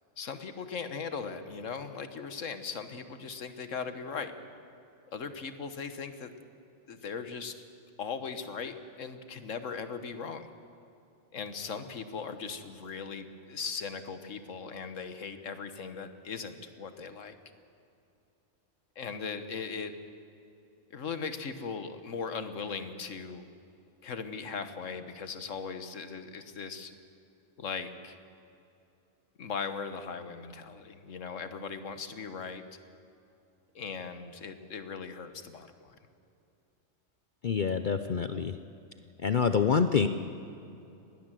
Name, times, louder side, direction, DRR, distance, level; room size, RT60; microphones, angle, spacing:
voice 1, 0.2-4.3 5.1-6.3 6.9-7.6 8.0-10.5 11.3-17.3 18.9-19.9 20.9-23.5 24.0-26.9 27.6-28.2 29.4-32.6 33.7-35.9, left 5 dB, 90° left, 9 dB, 1.6 m, -39 dB
voice 2, 37.4-38.5 39.2-40.1, left 6 dB, 50° left, 10 dB, 0.7 m, -26 dB
20.5 x 18.0 x 7.6 m, 2.8 s
omnidirectional pair, 1.3 m